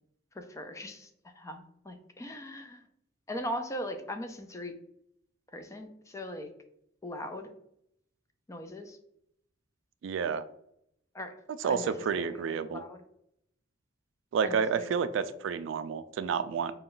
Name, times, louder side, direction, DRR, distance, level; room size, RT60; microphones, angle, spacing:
voice 1, 0.3-1.1 1.4-2.8 3.3-4.7 5.5-6.5 7.0-7.5 8.5-9.0 11.1-11.4 11.6-13.0 14.4-14.9, equal, 15° left, 7 dB, 0.4 m, -40 dB
voice 2, 10.0-10.4 11.6-12.8 14.3-16.7, right 6 dB, 70° right, 12 dB, 0.3 m, -30 dB
5.0 x 2.3 x 3.7 m, 0.74 s
head